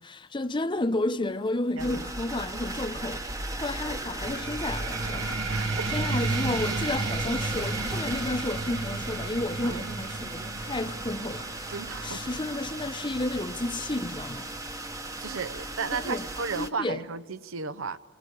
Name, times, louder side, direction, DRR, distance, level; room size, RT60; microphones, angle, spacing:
voice 1, 0.0-3.2 3.6-5.6 5.9-11.6 12.0-14.5 15.9-16.3 16.6-17.0, left 2 dB, 25° left, 0.7 m, -31 dB
sound 1, 1.8-16.7, right 2 dB, 15° right, 1.0 m, -36 dB
voice 2, 1.8-2.1 5.5-5.9 9.6-9.9 11.7-12.4 15.2-18.0, right 5 dB, 85° right, 0.8 m, -34 dB
sound 2, 4.2-15.3, right 3 dB, 60° right, 1.5 m, -34 dB
29.0 x 20.5 x 8.2 m
head